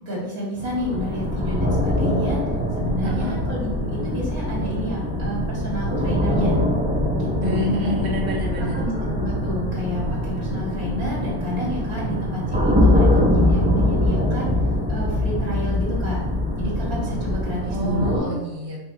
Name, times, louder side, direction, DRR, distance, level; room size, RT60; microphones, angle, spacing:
voice 1, 0.0-2.4 2.7-6.6 7.2-7.7 8.7-14.5 14.9-16.2 16.6-18.3, equal, 85° right, -4 dB, 3.0 m, -30 dB
sound 1, 0.6-18.2, left 1 dB, 5° right, 0.9 m, -23 dB
voice 2, 3.0-3.4 7.4-8.8 17.7-18.8, left 1 dB, 30° right, -6 dB, 1.7 m, -27 dB
5.6 x 5.2 x 4.3 m, 1.1 s
omnidirectional pair, 1.5 m